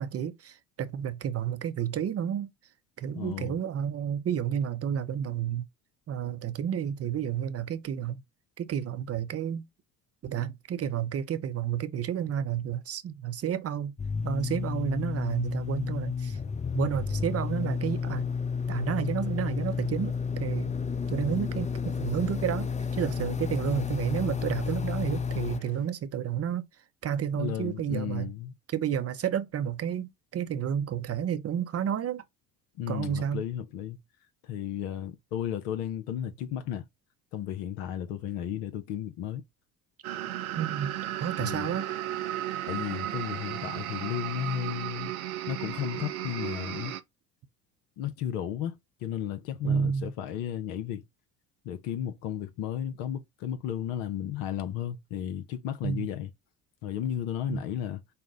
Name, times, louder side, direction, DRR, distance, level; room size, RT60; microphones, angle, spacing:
voice 1, 0.0-2.5 3.0-5.6 6.1-8.2 8.6-9.6 10.2-13.9 14.2-16.4 16.7-18.3 18.7-20.7 21.1-26.7 27.0-28.3 28.7-32.2 32.9-33.4 40.6-40.9 41.2-41.9 49.6-50.1 55.8-56.1 57.5-57.6, right 9 dB, 35° right, 0.7 m, -31 dB
voice 2, 3.1-3.5 25.6-25.8 27.3-28.5 32.8-34.0 34.4-36.9 37.3-39.4 41.4-41.7 42.7-45.1 45.5-46.9 48.0-51.0 51.6-56.3 56.8-58.0, left 10 dB, 70° left, 0.8 m, -34 dB
sound 1, 14.0-25.6, left 5 dB, 15° left, 0.6 m, -31 dB
sound 2, 40.0-47.0, right 13 dB, 85° right, 0.6 m, -35 dB
5.5 x 2.1 x 3.8 m
hypercardioid pair, 60°, 43 cm